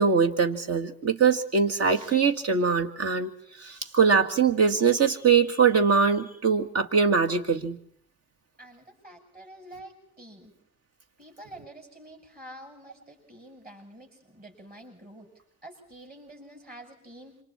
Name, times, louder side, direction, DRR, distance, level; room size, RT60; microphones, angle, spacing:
voice 1, 0.0-3.3 3.6-7.8, right 5 dB, 55° right, 5 dB, 2.1 m, -22 dB
voice 2, 8.6-10.5 11.2-15.3 15.6-17.4, right 1 dB, 30° right, 2 dB, 8.0 m, -47 dB
27.5 x 25.5 x 4.4 m, 0.65 s
cardioid pair, 95°, 30 cm